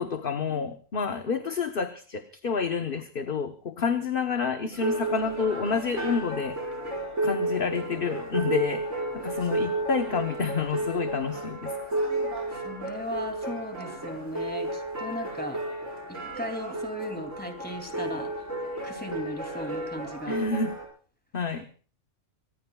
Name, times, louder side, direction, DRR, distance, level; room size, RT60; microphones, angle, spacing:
voice 1, 0.0-6.6 7.2-11.8 20.3-20.7 21.3-21.7, left 5 dB, 50° left, 6 dB, 1.2 m, -29 dB
sound 1, 4.7-20.9, right 1 dB, 75° right, 5.9 m, -32 dB
voice 2, 12.5-15.6 16.1-18.3 18.8-20.4, equal, 5° left, 5 dB, 2.8 m, -37 dB
25.0 x 19.5 x 2.3 m, 0.38 s
omnidirectional pair, 1.3 m